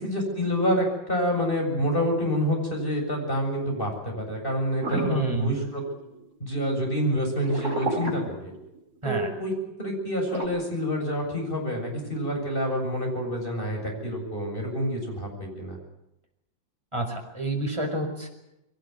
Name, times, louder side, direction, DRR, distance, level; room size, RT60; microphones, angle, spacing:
voice 1, 0.0-5.8 6.4-8.5 9.0-9.5 9.8-15.8, equal, 25° left, 1 dB, 7.7 m, -27 dB
sound 1, 4.8-6.2 7.4-9.0 10.3-10.5, right 2 dB, 40° right, 5.7 m, -32 dB
voice 2, 5.1-5.5 9.0-9.3 16.9-18.3, right 2 dB, 15° right, 2 dB, 5.2 m, -28 dB
22.5 x 19.0 x 9.7 m, 0.88 s
omnidirectional pair, 2.0 m